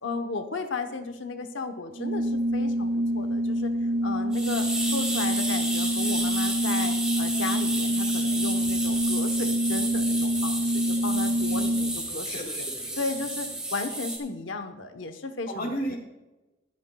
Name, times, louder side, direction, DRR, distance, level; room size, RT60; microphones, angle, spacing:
voice 1, 0.0-3.7 4.0-12.5 13.0-16.0, left 3 dB, 70° left, 7 dB, 0.9 m, -35 dB
Organ, 1.9-12.2, equal, 40° right, 2.5 m, -26 dB
sound 1, 4.3-14.2, right 1 dB, 5° right, 2.3 m, -32 dB
voice 2, 12.1-13.0 15.5-16.0, equal, 50° left, 2 dB, 2.5 m, -34 dB
22.5 x 9.5 x 2.3 m, 1.1 s
head